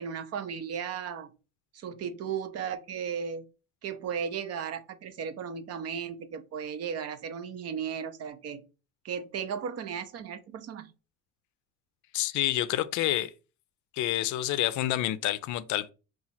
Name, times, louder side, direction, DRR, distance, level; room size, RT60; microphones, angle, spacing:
voice 1, 0.0-1.3 1.7-3.5 3.8-8.6 9.0-10.9, right 7 dB, 50° right, 0.6 m, -35 dB
voice 2, 12.1-13.3 13.9-15.9, left 14 dB, 60° left, 0.4 m, -28 dB
2.9 x 2.4 x 4.0 m
supercardioid pair, 90°, 33 cm